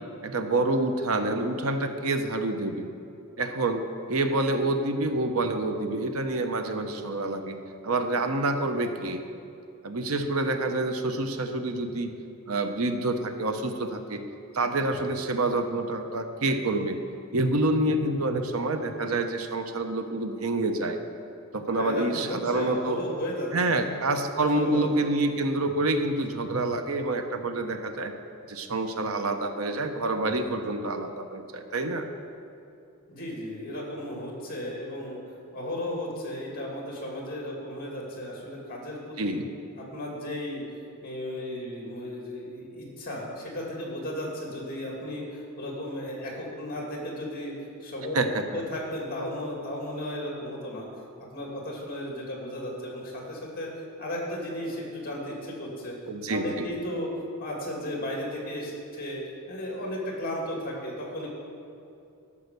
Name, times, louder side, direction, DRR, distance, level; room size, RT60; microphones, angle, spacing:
voice 1, 0.2-2.9 3.4-7.6 7.8-9.2 9.8-12.1 12.5-14.2 14.5-17.0 17.3-21.0 21.5-23.0 23.5-28.1 28.5-32.1 39.2-39.5 48.1-48.3 48.5-48.6 56.1-56.4, right 2 dB, 75° right, 7 dB, 0.8 m, -27 dB
voice 2, 21.7-23.9 24.5-24.8 33.1-35.2 35.5-39.4 39.8-40.6 41.0-48.2 48.5-50.9 51.2-53.7 54.0-56.0 56.3-57.1 57.4-59.2 59.5-61.3, left 1 dB, 45° left, -1 dB, 2.5 m, -35 dB
12.5 x 5.7 x 6.6 m, 2.7 s
head